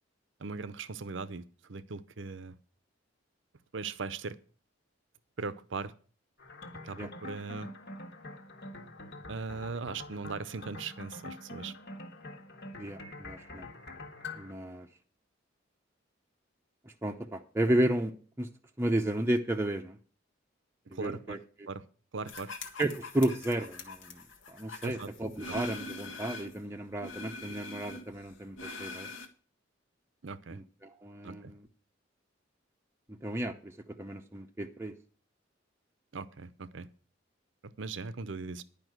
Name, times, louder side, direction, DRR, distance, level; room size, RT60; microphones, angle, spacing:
voice 1, 0.4-1.4 1.7-2.6 3.7-4.4 5.4-5.9 6.8-7.7 9.3-11.7 20.9-21.4 21.7-21.8 22.1-22.5 24.8-25.1 25.5-25.6 30.2-30.6 31.2-31.5 36.1-36.9 37.6-38.6, right 4 dB, 70° right, 15 dB, 0.7 m, -39 dB
sound 1, 6.4-14.5, left 2 dB, 60° left, 1.7 m, -45 dB
voice 2, 12.8-13.7 14.4-14.9 17.0-18.5 18.8-20.0 20.9-21.4 22.8-29.1 30.5-31.6 33.1-34.9, right 1 dB, 15° right, 3 dB, 0.7 m, -33 dB
sound 2, 22.3-26.6 27.0-29.3, left 2 dB, 80° left, 1.5 m, -43 dB
11.0 x 5.4 x 7.9 m, 0.41 s
head